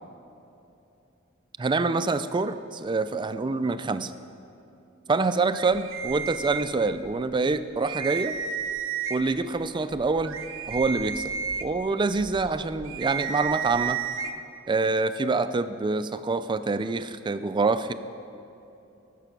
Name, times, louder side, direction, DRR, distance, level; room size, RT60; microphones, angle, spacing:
voice 1, 1.6-4.1 5.1-8.4 9.1-10.4 10.7-11.3 11.6-14.0 14.7-17.9, right 3 dB, 25° right, 12 dB, 0.4 m, -26 dB
sound 1, 5.5-7.1 7.5-7.6 7.8-9.4 9.9-14.3, right 7 dB, 65° right, 0.7 m, -32 dB
14.0 x 6.9 x 5.9 m, 2.8 s
head